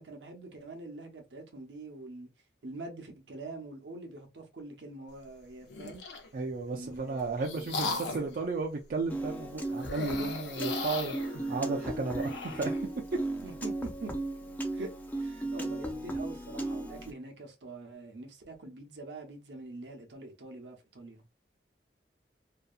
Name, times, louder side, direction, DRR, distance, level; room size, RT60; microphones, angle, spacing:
voice 1, 0.0-2.3 2.6-6.0 6.7-7.3 7.6-8.4 13.4-14.1 14.7-14.9 15.2-21.2, right 2 dB, 80° right, 0.7 m, -44 dB
sound 1, 5.7-6.3 6.9-8.4 9.8-12.8, left 4 dB, 90° left, 0.6 m, -38 dB
voice 2, 6.3-12.7, right 3 dB, 50° right, 0.4 m, -34 dB
Piano, 9.1-17.1, right 2 dB, 10° left, 0.5 m, -36 dB
2.7 x 2.3 x 2.3 m
head